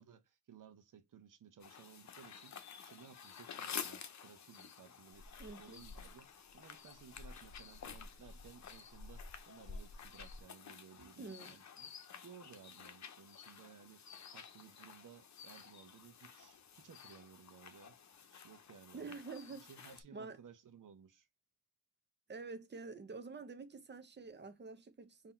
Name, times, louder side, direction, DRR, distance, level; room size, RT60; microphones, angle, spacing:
voice 1, 0.0-2.6 2.8-5.3 5.6-14.0 14.3-18.0 18.3-19.2 19.5-21.3, right 7 dB, 80° right, 0.9 m, -59 dB
sound 1, 1.6-20.0, left 7 dB, 60° left, 0.7 m, -52 dB
sound 2, 5.1-10.4, left 2 dB, 25° left, 0.5 m, -53 dB
voice 2, 5.4-5.9 11.2-11.6 18.9-19.7 20.1-20.4 22.3-25.3, right 4 dB, 35° right, 0.7 m, -48 dB
3.9 x 2.8 x 4.3 m
wide cardioid pair, 125°, 31 cm